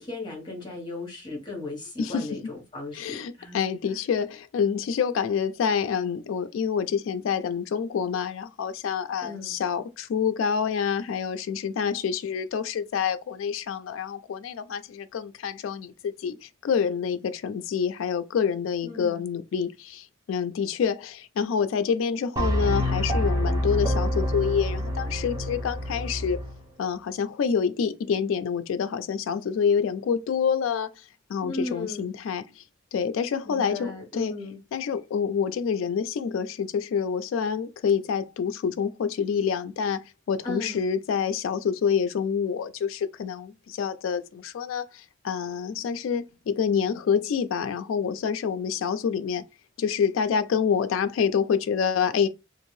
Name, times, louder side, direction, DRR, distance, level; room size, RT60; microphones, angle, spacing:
voice 1, 0.0-4.0 9.2-9.5 18.8-19.2 31.4-32.1 33.4-34.6 40.4-40.8, left 2 dB, 25° left, 1.2 m, -36 dB
voice 2, 2.0-2.5 2.9-26.4 26.8-31.0 31.3-32.6 32.9-34.3 34.7-49.4 49.8-52.3, left 7 dB, 85° left, 0.3 m, -27 dB
sound 1, 22.4-26.6, left 1 dB, 20° right, 0.7 m, -27 dB
2.6 x 2.5 x 3.1 m
head